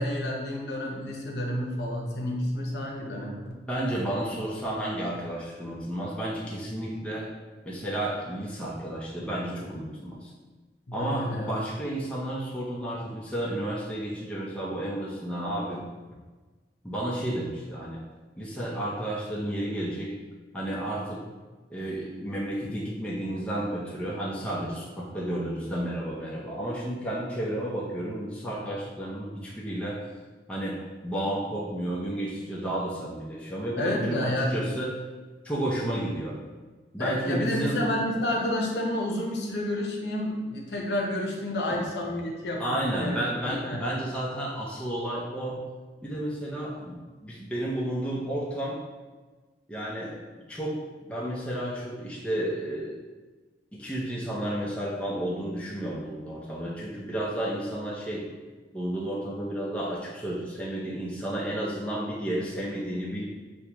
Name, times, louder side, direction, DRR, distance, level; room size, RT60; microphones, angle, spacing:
voice 1, 0.0-3.6 10.9-11.5 33.8-34.6 37.0-43.8, left 1 dB, 75° left, -1 dB, 0.8 m, -30 dB
voice 2, 3.7-7.3 7.7-10.3 10.9-15.8 16.8-18.0 18.4-20.1 20.5-21.2 21.7-30.0 30.5-30.8 31.0-34.9 35.4-36.4 36.9-37.8 41.7-41.8 42.6-45.6 46.0-48.8 49.7-50.2 50.5-50.8 51.1-53.0 53.7-58.2 58.7-63.3, right 1 dB, 5° left, -5 dB, 0.6 m, -32 dB
6.3 x 2.2 x 3.0 m, 1.3 s
head